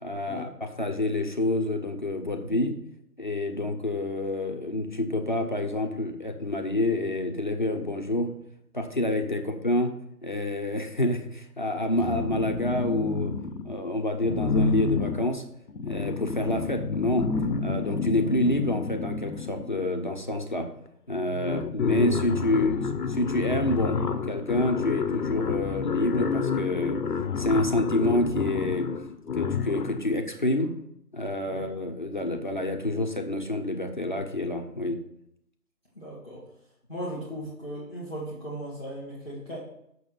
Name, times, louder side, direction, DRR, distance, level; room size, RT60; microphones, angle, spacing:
voice 1, 0.0-2.7 3.2-8.3 8.7-9.9 10.2-13.3 13.6-15.4 15.8-17.3 17.6-20.7 21.1-27.0 27.4-28.9 29.3-30.7 31.1-35.0, left 1 dB, 30° left, 4 dB, 0.7 m, -28 dB
sound 1, 12.0-13.8 14.2-19.9 20.9-21.0 21.2-30.1, left 5 dB, 75° left, 0.7 m, -29 dB
voice 2, 35.9-36.5 36.9-39.6, equal, 5° right, -9 dB, 1.1 m, -37 dB
7.0 x 6.1 x 5.8 m, 0.77 s
figure-of-eight pair, 150°, 48 cm